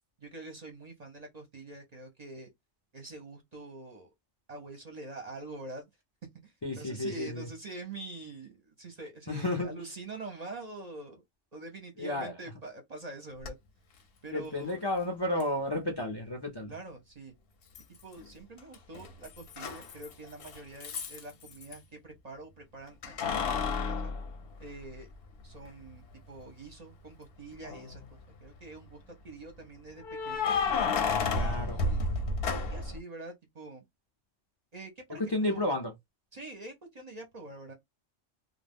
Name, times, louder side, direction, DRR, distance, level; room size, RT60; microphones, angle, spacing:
voice 1, 0.2-2.5 2.9-4.1 4.5-5.9 6.4-11.2 11.5-13.6 14.2-14.8 16.7-17.3 18.0-24.1 24.6-25.1 25.4-28.0 28.4-30.5 31.2-32.1 32.7-33.9 34.7-35.6 36.3-37.7, right 2 dB, 45° right, 0.6 m, -45 dB
voice 2, 6.6-7.4 9.3-9.7 12.0-12.3 14.3-16.7 31.3-31.8 35.3-35.9, left 1 dB, 40° left, 0.3 m, -32 dB
Keys jangling, 13.4-13.5 15.4-15.5 17.7-18.3 18.6-21.8 23.0-25.1 25.6-25.7 27.5-28.1 30.0-33.0, left 4 dB, 60° left, 0.7 m, -31 dB
2.3 x 2.0 x 3.4 m
omnidirectional pair, 1.3 m